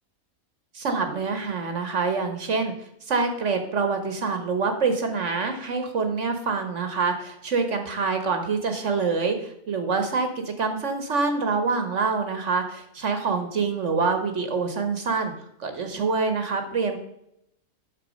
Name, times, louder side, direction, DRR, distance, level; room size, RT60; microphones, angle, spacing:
voice 1, 0.7-2.7 3.1-15.3 15.6-17.0, right 4 dB, 60° right, 7 dB, 1.3 m, -26 dB
8.6 x 6.6 x 5.1 m, 0.79 s
omnidirectional pair, 1.5 m